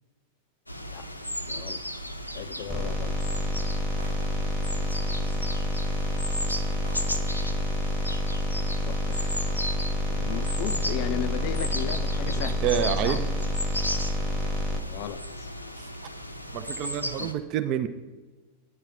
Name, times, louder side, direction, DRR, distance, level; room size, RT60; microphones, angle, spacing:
sound 1, 0.7-17.3, equal, 85° left, 0.6 m, -35 dB
voice 1, 1.5-1.8 2.3-3.1 8.8-9.4 10.1-13.2 14.8-15.5 17.2-17.3, left 12 dB, 45° left, 13 dB, 0.4 m, -36 dB
sound 2, 2.7-14.8, left 1 dB, ahead, 1.0 m, -28 dB
sound 3, 4.0-4.6 5.6-5.7 6.2-6.3 6.8-7.4, right 1 dB, 85° right, 0.8 m, -47 dB
voice 2, 12.6-13.3 15.8-15.9 16.5-17.9, right 10 dB, 40° right, 10 dB, 0.5 m, -28 dB
9.9 x 7.5 x 4.7 m, 1.2 s
figure-of-eight pair, 90°, 0 cm